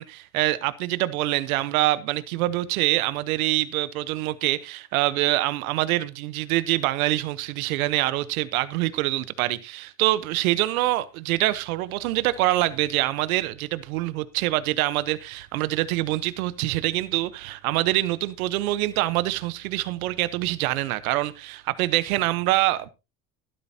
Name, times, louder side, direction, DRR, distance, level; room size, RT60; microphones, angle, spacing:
voice 1, 0.0-22.9, right 17 dB, 85° right, 1.1 m, -25 dB
13.5 x 12.5 x 2.9 m
supercardioid pair, 80°, 41 cm